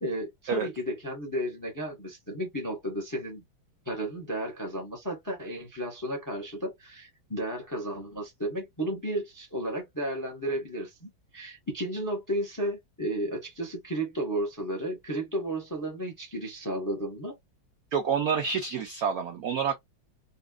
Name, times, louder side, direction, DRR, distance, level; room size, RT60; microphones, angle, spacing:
voice 1, 0.0-3.4 3.8-17.4, right 1 dB, 20° left, 0.5 m, -33 dB
voice 2, 17.9-19.7, right 6 dB, 85° right, 0.8 m, -28 dB
4.1 x 2.3 x 2.3 m
omnidirectional pair, 2.3 m